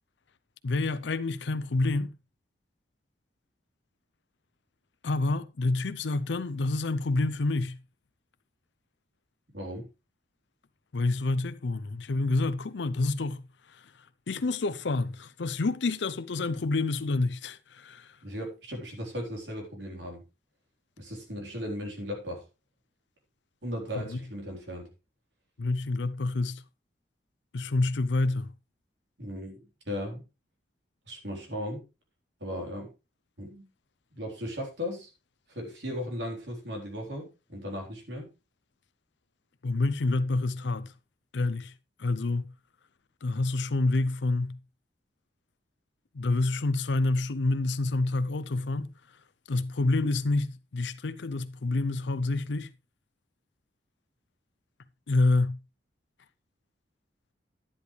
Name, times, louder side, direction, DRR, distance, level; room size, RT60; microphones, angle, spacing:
voice 1, 0.6-2.1 5.0-7.8 10.9-18.2 23.9-24.2 25.6-26.6 27.5-28.5 39.6-40.9 41.3-41.7 42.0-42.5 43.2-44.6 46.1-49.2 49.5-52.7 55.1-55.6, left 2 dB, 75° left, 0.6 m, -28 dB
voice 2, 9.5-9.9 18.2-20.2 21.0-22.4 23.6-24.9 29.2-29.5 29.9-30.2 31.1-31.8 32.4-32.9 33.4-33.7 34.1-35.1 35.5-38.3, equal, 70° right, 3.9 m, -36 dB
10.5 x 10.0 x 3.3 m
head